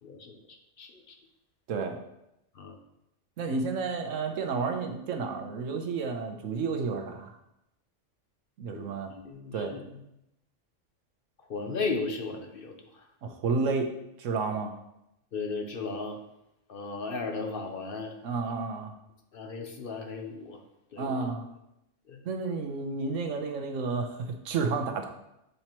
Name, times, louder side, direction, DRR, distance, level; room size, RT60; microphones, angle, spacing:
voice 1, 0.0-0.3 0.8-1.2 2.5-2.8 8.7-9.8 11.4-13.1 15.3-16.2 16.7-18.2 19.3-20.6 20.9-21.2 22.1-22.2, left 4 dB, 55° left, 4 dB, 0.8 m, -36 dB
voice 2, 3.4-7.3 8.6-9.1 9.5-9.7 13.2-13.9 14.2-14.7 18.2-18.9 21.0-21.5 22.2-25.1, right 4 dB, 85° right, 5 dB, 1.1 m, -31 dB
7.9 x 4.4 x 2.9 m, 0.85 s
omnidirectional pair, 1.3 m